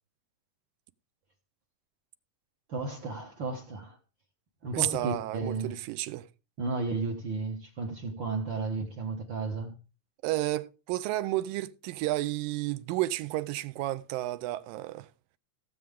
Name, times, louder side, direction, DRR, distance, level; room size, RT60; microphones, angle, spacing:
voice 1, 2.7-4.0 4.6-5.8 6.6-9.8, right 3 dB, 60° right, 1.3 m, -33 dB
voice 2, 4.7-6.3 10.2-15.1, right 16 dB, 90° right, 2.4 m, -31 dB
16.5 x 7.8 x 3.5 m
omnidirectional pair, 3.9 m